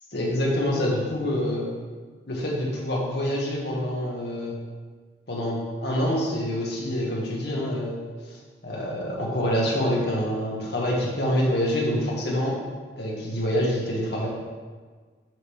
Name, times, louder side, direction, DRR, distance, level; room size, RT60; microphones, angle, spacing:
voice 1, 0.1-1.7 2.3-4.5 5.3-8.0 8.3-8.4 8.6-12.6 13.0-14.3, equal, 60° left, -3 dB, 1.6 m, -26 dB
7.6 x 3.8 x 6.3 m, 1.5 s
head